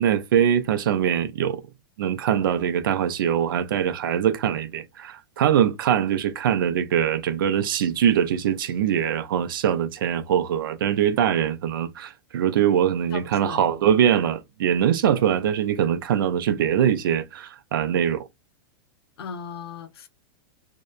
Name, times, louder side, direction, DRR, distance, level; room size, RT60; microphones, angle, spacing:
voice 1, 0.0-1.6 2.0-18.2, right 9 dB, 60° right, 0.5 m, -22 dB
voice 2, 13.1-13.8 19.2-20.1, left 6 dB, 80° left, 0.6 m, -37 dB
2.7 x 2.1 x 2.2 m
supercardioid pair, 175°, 13 cm